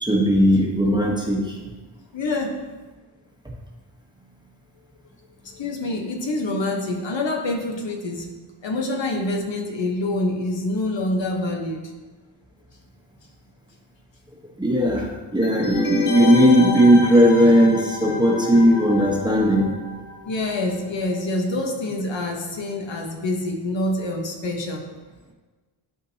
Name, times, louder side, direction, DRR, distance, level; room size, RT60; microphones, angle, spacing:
voice 1, 0.0-1.6 14.6-19.7, equal, 10° right, -2 dB, 1.1 m, -17 dB
voice 2, 2.1-2.6 5.4-8.2 8.6-11.9 20.3-24.8, left 2 dB, 60° left, 1 dB, 1.2 m, -26 dB
sound 1, 15.4-20.9 21.1-21.2, left 5 dB, 85° left, 0.9 m, -31 dB
11.5 x 4.4 x 2.8 m, 1.3 s
wide cardioid pair, 120°, 49 cm